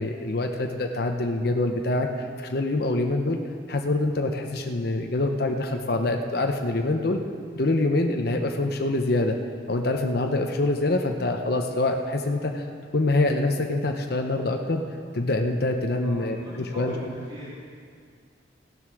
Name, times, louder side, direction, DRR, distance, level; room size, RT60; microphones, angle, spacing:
voice 1, 0.0-3.4 3.7-7.2 7.5-9.4 9.7-12.7 12.9-14.8 15.1-16.9, left 2 dB, 55° left, 4 dB, 0.8 m, -25 dB
voice 2, 16.0-17.5, equal, 25° right, -10 dB, 3.7 m, -40 dB
15.5 x 8.0 x 6.1 m, 2.1 s
head